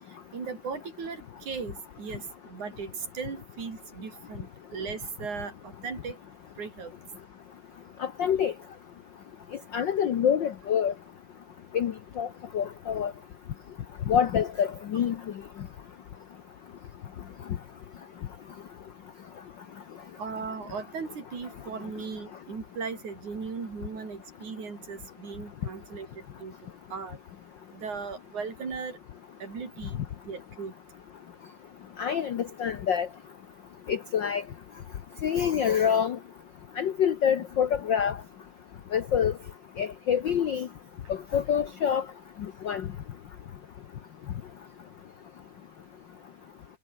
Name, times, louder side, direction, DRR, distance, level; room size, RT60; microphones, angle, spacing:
voice 1, 0.3-6.2 6.6-6.9 20.2-26.5 26.9-27.2 27.7-29.0 29.4-30.7, right 5 dB, 75° right, 5.9 m, -37 dB
voice 2, 8.0-8.5 9.7-10.9 11.7-12.3 12.5-13.1 14.1-15.2 32.0-33.1 33.9-34.4 35.2-36.2 36.8-38.2 38.9-39.3 39.8-40.7 41.1-42.0 42.6-42.9, left 8 dB, 70° left, 1.1 m, -26 dB
omnidirectional pair, 3.4 m